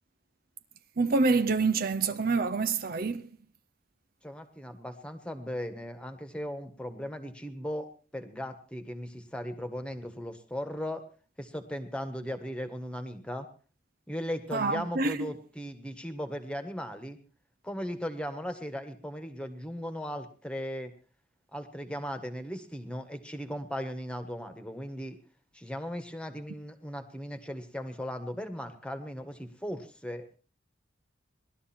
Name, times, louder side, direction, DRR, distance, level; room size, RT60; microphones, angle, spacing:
voice 1, 1.0-3.3 14.5-15.3, right 3 dB, 50° right, 0.6 m, -27 dB
voice 2, 4.2-11.0 11.4-13.5 14.1-17.2 17.6-20.9 21.5-25.2 25.5-30.4, equal, 5° left, 1.5 m, -37 dB
19.0 x 12.5 x 4.4 m
head